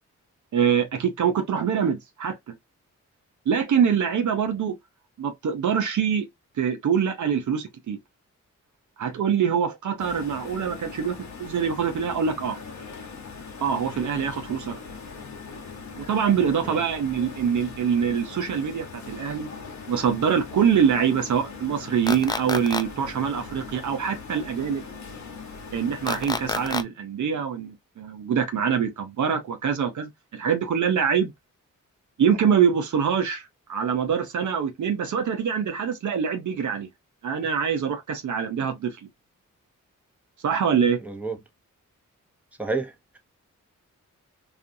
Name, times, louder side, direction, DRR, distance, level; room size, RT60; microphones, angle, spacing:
voice 1, 0.5-2.6 3.5-4.7 5.2-6.3 6.6-8.0 9.0-12.6 13.6-14.7 16.0-19.5 19.9-24.8 25.7-31.3 32.2-33.4 33.7-36.9 37.2-39.0 40.4-41.0, right 7 dB, 65° right, 0.6 m, -24 dB
sound 1, 10.0-26.8, left 4 dB, 60° left, 0.8 m, -40 dB
sound 2, 22.1-22.8 26.1-26.8, left 3 dB, 15° left, 0.3 m, -27 dB
voice 2, 41.1-41.4 42.6-42.9, right 3 dB, 5° right, 0.9 m, -29 dB
2.4 x 2.4 x 2.6 m
cardioid pair, 55°, 33 cm